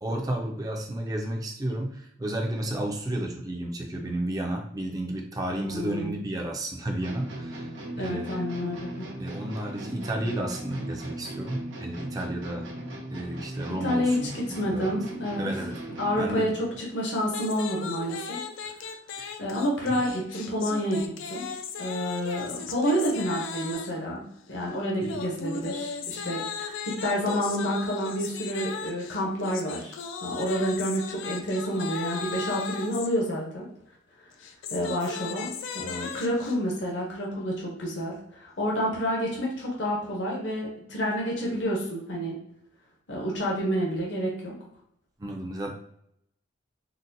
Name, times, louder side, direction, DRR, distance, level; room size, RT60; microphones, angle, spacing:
voice 1, 0.0-7.7 8.0-8.4 9.2-12.7 13.1-14.1 14.7-14.9 15.4-15.7 16.2-16.5 19.2-19.3 19.9-20.0 25.1-25.2 26.2-26.3 45.2-45.7, right 1 dB, 20° right, 1 dB, 0.4 m, -32 dB
voice 2, 5.6-6.1 7.9-9.1 13.8-15.5 16.0-18.4 19.4-21.4 21.8-30.0 30.2-33.6 34.7-42.4 43.1-44.5, equal, 65° left, -2 dB, 0.8 m, -29 dB
sound 1, 7.0-16.4, right 1 dB, 80° right, 0.8 m, -38 dB
sound 2, 17.3-24.0 25.0-33.1 34.3-36.6, left 6 dB, 90° left, 0.4 m, -37 dB
3.9 x 2.1 x 2.6 m, 0.76 s
head